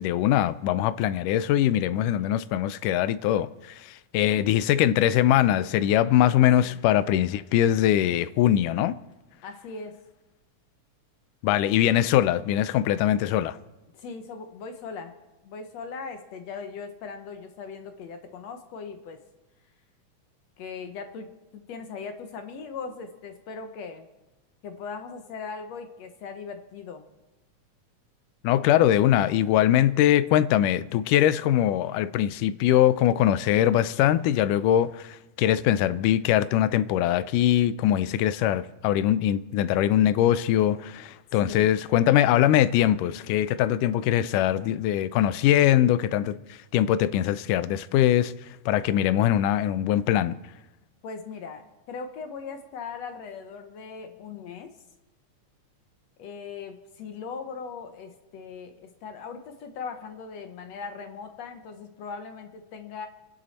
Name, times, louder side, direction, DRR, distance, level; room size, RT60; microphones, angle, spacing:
voice 1, 0.0-9.0 11.4-13.6 28.4-50.4, left 12 dB, 90° left, 2.2 m, -22 dB
voice 2, 4.2-4.6 6.6-6.8 9.4-10.0 13.9-15.1 15.4-19.2 20.6-24.1 24.6-27.0 41.4-41.7 44.0-44.3 51.0-54.7 56.2-63.1, left 5 dB, 65° left, 1.9 m, -39 dB
29.0 x 10.5 x 4.2 m
omnidirectional pair, 3.6 m